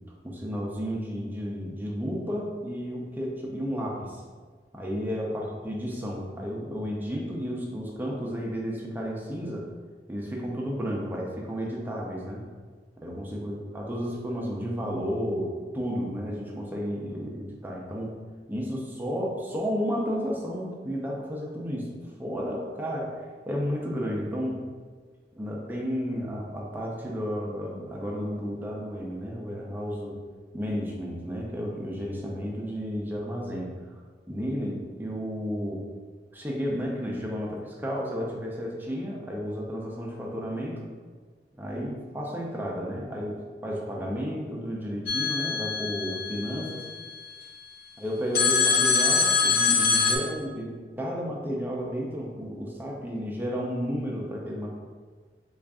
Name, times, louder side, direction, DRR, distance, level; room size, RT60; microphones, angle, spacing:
voice 1, 0.2-4.2 4.7-9.7 10.1-12.4 13.0-18.2 18.5-24.6 25.3-30.2 30.5-33.7 34.3-35.8 36.3-40.8 41.6-46.9 48.0-54.7, equal, 10° right, -2 dB, 0.5 m, -32 dB
sound 1, 45.1-47.3 48.3-50.2, left 5 dB, 55° left, 0.5 m, -24 dB
3.7 x 2.4 x 3.5 m, 1.5 s
head